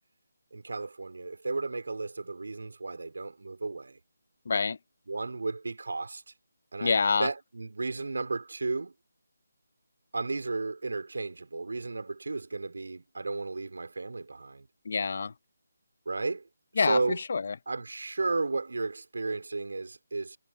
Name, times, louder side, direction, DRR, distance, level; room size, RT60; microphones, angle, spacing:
voice 1, 0.5-4.0 5.1-6.3 6.7-6.9 7.2-8.9 10.1-14.7 16.1-16.4 16.9-17.2 17.7-20.4, right 3 dB, 75° right, 3.9 m, -33 dB
voice 2, 4.5-4.8 6.8-7.3 14.8-15.3 16.8-17.6, left 5 dB, 50° left, 0.6 m, -27 dB
figure-of-eight pair, 165°, 0 cm